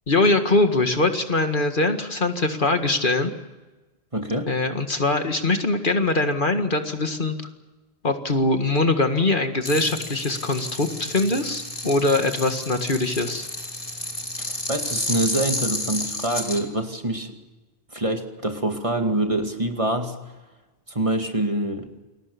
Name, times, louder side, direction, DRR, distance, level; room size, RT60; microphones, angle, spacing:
voice 1, 0.1-3.3 4.5-7.5 8.0-13.5, left 2 dB, 55° left, 6 dB, 2.1 m, -22 dB
voice 2, 4.1-4.5 14.4-17.4 17.9-20.1 20.9-21.9, right 1 dB, 30° right, 5 dB, 2.4 m, -25 dB
sound 1, 9.6-16.6, left 1 dB, 35° left, 3.3 m, -31 dB
28.5 x 21.5 x 7.0 m, 1.2 s
omnidirectional pair, 1.0 m